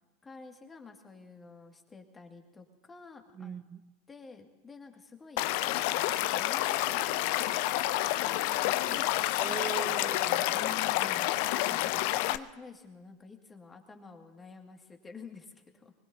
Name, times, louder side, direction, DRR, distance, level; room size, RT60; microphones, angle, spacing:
voice 1, 0.2-3.5 4.1-5.5 5.9-9.1 9.4-9.6 10.5-11.3 11.6-15.9, left 4 dB, 20° left, 4 dB, 2.1 m, -49 dB
voice 2, 3.3-3.9 9.4-10.7 11.0-11.9, right 8 dB, 30° right, 12 dB, 0.5 m, -42 dB
Stream / Liquid, 5.4-12.4, left 15 dB, 60° left, 0.5 m, -29 dB
25.0 x 20.5 x 2.8 m, 1.2 s
figure-of-eight pair, 85°, 0 cm